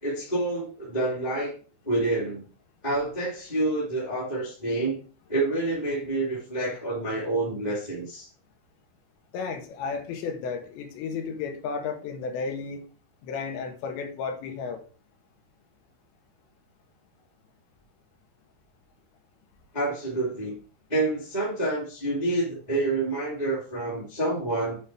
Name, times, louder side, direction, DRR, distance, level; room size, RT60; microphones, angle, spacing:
voice 1, 0.0-1.5 1.8-2.4 2.8-5.0 5.3-8.3 19.7-20.5 20.9-24.8, right 2 dB, 10° left, -6 dB, 2.2 m, -28 dB
voice 2, 9.3-12.8 13.2-14.8, left 5 dB, 80° left, 4 dB, 3.8 m, -33 dB
9.5 x 5.2 x 4.6 m, 0.38 s
omnidirectional pair, 5.1 m